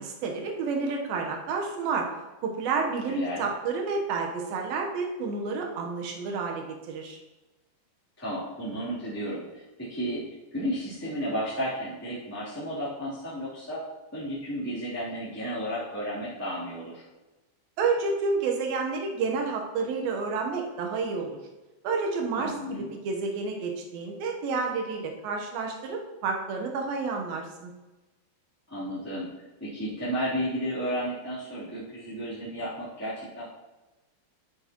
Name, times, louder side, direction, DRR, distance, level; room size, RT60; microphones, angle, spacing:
voice 1, 0.0-2.1 2.4-7.2 17.8-21.4 21.8-27.7, right 4 dB, 75° right, 2 dB, 2.3 m, -30 dB
voice 2, 3.1-3.4 8.2-10.2 10.5-13.8 14.1-17.0 22.3-22.9 28.7-29.3 29.6-33.5, equal, 5° left, -12 dB, 1.8 m, -33 dB
11.0 x 8.2 x 3.0 m, 1.1 s
omnidirectional pair, 5.4 m